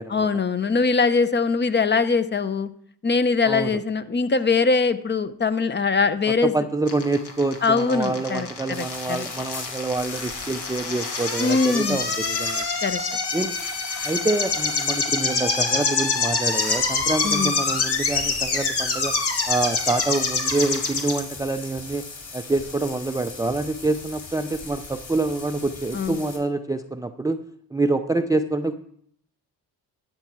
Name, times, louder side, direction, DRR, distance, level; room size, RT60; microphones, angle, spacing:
voice 1, 0.1-2.7 3.0-6.5 7.6-9.3 11.4-12.0 12.8-13.0 17.2-17.5 25.9-26.2, left 4 dB, 25° left, 13 dB, 0.7 m, -22 dB
voice 2, 3.4-3.8 6.4-12.7 13.3-13.6 14.0-19.2 19.5-22.0 22.3-27.4 27.7-28.7, right 2 dB, 10° right, 9 dB, 0.5 m, -26 dB
sound 1, 6.9-21.2, left 4 dB, 65° left, 2.1 m, -26 dB
sound 2, 8.7-26.4, left 3 dB, 45° left, 4.4 m, -39 dB
12.5 x 6.8 x 4.7 m, 0.66 s
cardioid pair, 80°, 42 cm